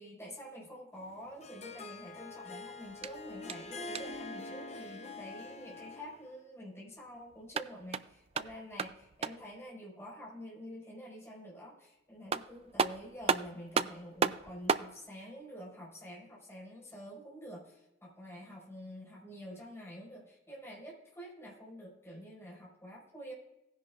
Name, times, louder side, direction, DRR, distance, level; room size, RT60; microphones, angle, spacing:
voice 1, 0.0-23.3, equal, 15° left, -4 dB, 4.9 m, -48 dB
Harp, 1.0-6.3, left 3 dB, 40° left, 0.8 m, -45 dB
sound 1, 2.9-4.3 7.3-9.6 11.8-11.9 12.3-14.9, right 6 dB, 35° right, 0.3 m, -34 dB
18.0 x 10.5 x 2.4 m, 0.95 s
head